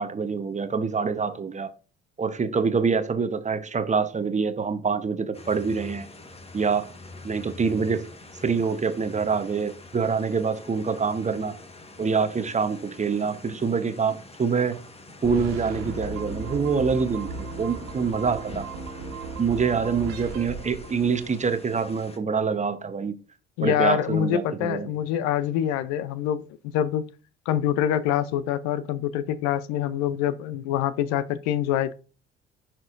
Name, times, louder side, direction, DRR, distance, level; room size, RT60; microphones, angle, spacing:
voice 1, 0.0-1.7 2.2-6.1 6.5-6.9 7.2-8.0 8.4-11.5 12.0-14.8 15.2-18.6 19.4-23.2 23.6-24.9, right 5 dB, 25° right, 0.9 m, -25 dB
sound 1, 5.3-22.2, left 2 dB, 20° left, 1.3 m, -45 dB
sound 2, 15.2-21.4, right 3 dB, 60° right, 1.6 m, -36 dB
voice 2, 23.6-26.4 26.7-27.0 27.5-31.9, left 10 dB, 65° left, 0.6 m, -25 dB
10.5 x 4.5 x 2.5 m
hypercardioid pair, 50°, 30 cm